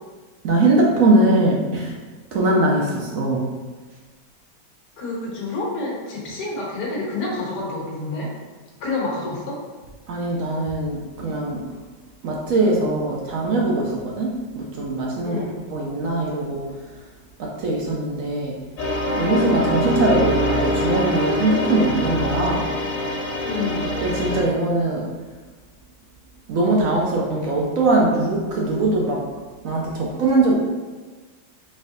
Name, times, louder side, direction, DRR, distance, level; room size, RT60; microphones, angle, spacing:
voice 1, 0.4-1.9 2.3-3.4 10.1-11.6 12.2-15.4 15.7-16.7 17.4-18.5 19.2-22.7 24.0-25.1 26.5-29.2 29.6-30.5, right 2 dB, 65° right, -2 dB, 0.8 m, -21 dB
voice 2, 5.0-8.3 8.8-9.6 15.2-15.6 23.4-23.9, left 2 dB, 70° left, -3 dB, 1.6 m, -28 dB
sound 1, 18.8-24.4, left 1 dB, 55° left, 1.4 m, -24 dB
4.2 x 3.6 x 2.6 m, 1.3 s
omnidirectional pair, 1.9 m